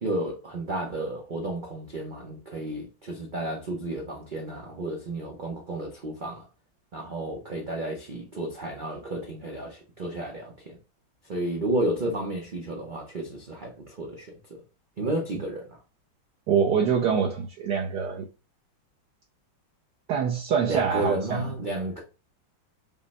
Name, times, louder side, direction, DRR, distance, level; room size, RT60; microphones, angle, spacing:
voice 1, 0.0-6.4 6.9-10.8 11.3-14.3 15.0-15.8 20.7-22.0, right 1 dB, 90° right, 0.4 m, -32 dB
voice 2, 16.5-18.3 20.1-21.5, right 7 dB, 70° right, 1.2 m, -25 dB
5.4 x 2.1 x 4.0 m
omnidirectional pair, 2.1 m